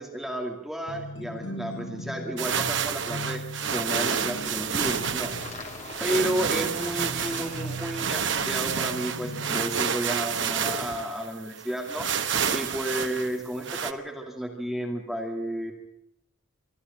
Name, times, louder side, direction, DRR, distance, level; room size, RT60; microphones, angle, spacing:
voice 1, 0.0-3.4 3.7-5.7 6.0-12.1 12.5-15.7, right 1 dB, ahead, 1 dB, 2.4 m, -32 dB
sound 1, 0.9-9.8, equal, 70° left, 2.0 m, -39 dB
sound 2, 2.4-13.9, right 7 dB, 65° right, 1.1 m, -29 dB
sound 3, 3.8-8.9, left 3 dB, 35° left, 2.8 m, -44 dB
25.0 x 12.5 x 9.0 m, 0.78 s
head